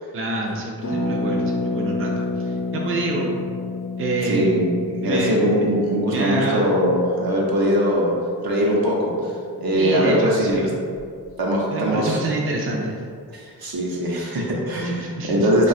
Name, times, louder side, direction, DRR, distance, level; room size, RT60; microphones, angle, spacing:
voice 1, 0.1-3.3 4.0-4.5 5.0-5.6 6.1-6.7 9.8-10.8 11.7-13.0 14.9-15.7, right 2 dB, 35° right, -2 dB, 0.5 m, -27 dB
Harp, 0.8-10.4 10.7-10.8 11.0-11.3, left 2 dB, 60° left, 0.6 m, -30 dB
voice 2, 4.3-8.1 8.4-9.1 9.6-10.6 11.4-12.2 13.3-15.7, equal, 70° right, -3 dB, 0.8 m, -21 dB
2.7 x 2.3 x 4.1 m, 2.3 s
wide cardioid pair, 65°, 37 cm